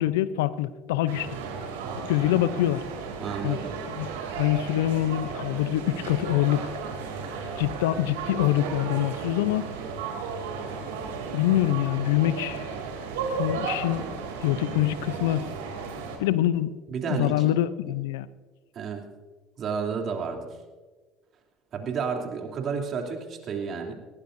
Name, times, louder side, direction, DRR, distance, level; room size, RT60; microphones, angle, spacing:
voice 1, 0.0-1.4 2.0-2.8 3.4-3.6 4.0-4.1 4.4-6.7 7.6-9.7 11.3-12.7 13.4-14.1 14.4-15.5 16.2-16.7 17.1-18.3, left 14 dB, 85° left, 0.6 m, -25 dB
sound 1, 1.1-16.2, right 5 dB, 85° right, 2.8 m, -34 dB
voice 2, 3.2-3.7 16.9-17.5 18.7-19.0 19.6-20.4 21.7-23.9, right 6 dB, 50° right, 3.0 m, -31 dB
19.0 x 18.5 x 2.7 m
hypercardioid pair, 75°, 0 cm